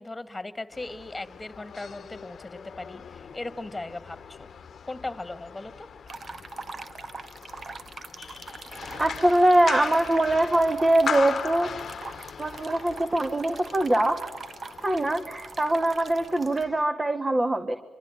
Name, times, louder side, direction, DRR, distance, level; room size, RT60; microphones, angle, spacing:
voice 1, 0.0-4.5 4.9-5.9, left 2 dB, 20° left, 12 dB, 2.3 m, -38 dB
sound 1, 0.7-16.8, left 7 dB, 55° left, 1.2 m, -39 dB
sound 2, 6.1-16.6, right 4 dB, 45° right, 1.6 m, -42 dB
voice 2, 9.0-11.7 12.4-14.2 14.8-17.8, right 1 dB, 25° right, 8 dB, 2.1 m, -23 dB
25.5 x 24.5 x 9.4 m, 1.1 s
hypercardioid pair, 45°, 0 cm